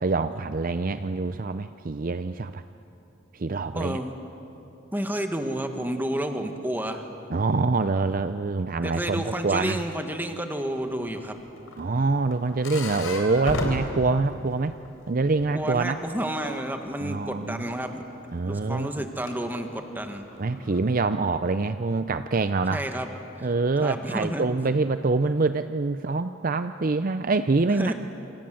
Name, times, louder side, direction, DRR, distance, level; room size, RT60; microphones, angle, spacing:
voice 1, 0.0-2.6 3.3-4.0 7.3-9.8 11.8-14.7 15.1-16.0 17.0-17.7 18.3-19.0 20.4-22.8 23.4-27.9, right 3 dB, 45° right, 11 dB, 0.5 m, -25 dB
voice 2, 3.7-4.1 4.9-7.0 8.8-11.4 15.5-18.0 18.4-20.2 22.7-23.1 23.8-24.5 27.8-27.9, right 1 dB, 10° right, 5 dB, 1.8 m, -30 dB
sound 1, 11.2-15.0 15.3-16.6 17.8-17.9 19.0-19.3 19.9-20.8, left 2 dB, 90° left, 4.0 m, -33 dB
28.5 x 26.5 x 7.7 m, 2.9 s
head